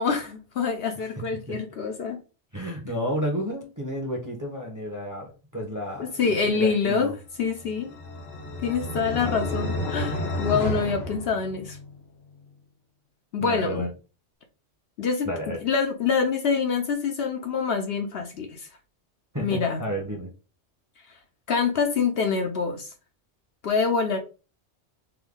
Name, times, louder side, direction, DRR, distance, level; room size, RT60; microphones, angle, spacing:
voice 1, 0.0-2.2 6.0-7.1 7.4-7.9 8.6-11.8 13.3-13.9 15.0-18.7 19.4-19.8 21.5-22.9 23.6-24.2, left 5 dB, 60° left, 0.8 m, -26 dB
voice 2, 2.5-7.1 9.2-9.4 13.4-13.9 15.2-15.6 19.3-20.3, equal, 20° right, 0.7 m, -31 dB
sound 1, 7.5-12.0, left 1 dB, 80° left, 1.2 m, -31 dB
3.4 x 2.2 x 3.7 m
omnidirectional pair, 1.3 m